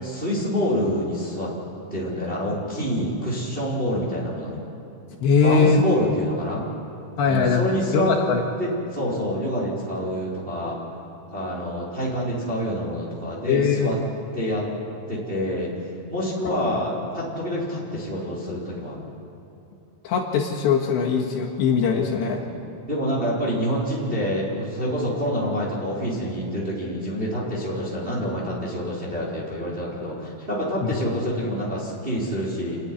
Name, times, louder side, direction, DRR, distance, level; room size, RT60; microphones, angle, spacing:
voice 1, 0.0-1.5 1.9-4.6 5.4-6.6 7.3-8.1 8.6-10.8 11.3-14.0 14.3-14.6 15.1-15.7 16.1-19.0 22.4-22.6 22.9-32.8, equal, 15° right, -6 dB, 3.2 m, -27 dB
voice 2, 5.2-5.8 7.2-7.6 7.9-8.4 13.5-13.9 20.0-22.4 30.8-31.0, left 5 dB, 70° left, -1 dB, 3.8 m, -21 dB
28.0 x 10.0 x 9.9 m, 2.9 s
omnidirectional pair, 5.5 m